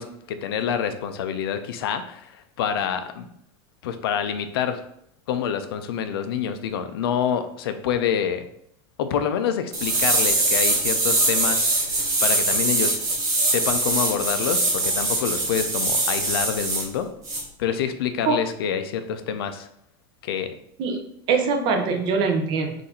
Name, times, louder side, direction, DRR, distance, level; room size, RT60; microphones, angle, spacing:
voice 1, 0.0-2.3 2.6-3.3 3.8-4.8 5.3-8.5 9.0-11.7 12.2-13.0 13.5-17.1 17.6-19.7 20.2-20.5, left 8 dB, 90° left, 9 dB, 0.5 m, -27 dB
sound 1, 9.7-16.8 17.2-17.4, right 2 dB, 25° right, 1.7 m, -22 dB
voice 2, 20.8-22.7, right 4 dB, 40° right, 4 dB, 0.7 m, -23 dB
4.0 x 2.6 x 4.2 m, 0.72 s
supercardioid pair, 145°, 12 cm